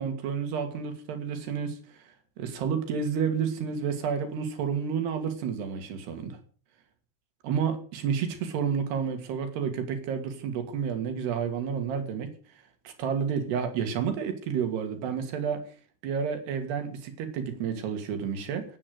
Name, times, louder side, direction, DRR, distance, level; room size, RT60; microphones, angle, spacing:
voice 1, 0.0-6.4 7.4-12.3 12.8-15.6 16.0-18.6, right 7 dB, 65° right, 6 dB, 4.4 m, -30 dB
17.5 x 9.3 x 6.7 m, 0.41 s
omnidirectional pair, 5.4 m